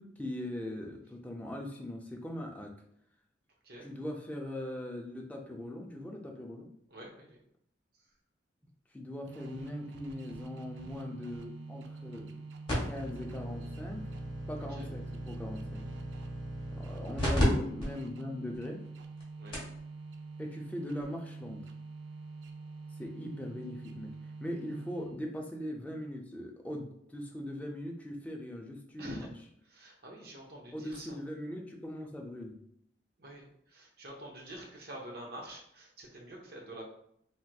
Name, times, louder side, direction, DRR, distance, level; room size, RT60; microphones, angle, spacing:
voice 1, 0.0-2.7 3.8-6.7 8.9-12.4 12.8-14.1 14.5-15.9 16.8-18.8 20.4-21.7 23.0-24.1 24.4-29.3 30.7-32.5, left 1 dB, 10° left, 1 dB, 0.4 m, -40 dB
voice 2, 6.9-7.4 14.7-14.9 19.4-19.6 29.0-29.3 29.7-31.2 33.2-36.8, right 1 dB, 60° right, -1 dB, 0.8 m, -47 dB
sound 1, 9.3-25.4, right 3 dB, 80° right, 0.4 m, -46 dB
sound 2, 12.7-17.4 17.8-17.9 18.5-18.6 19.2-19.3 19.5-19.8 21.0-21.1, equal, 30° left, 1.4 m, -36 dB
3.3 x 2.9 x 2.2 m, 0.71 s
head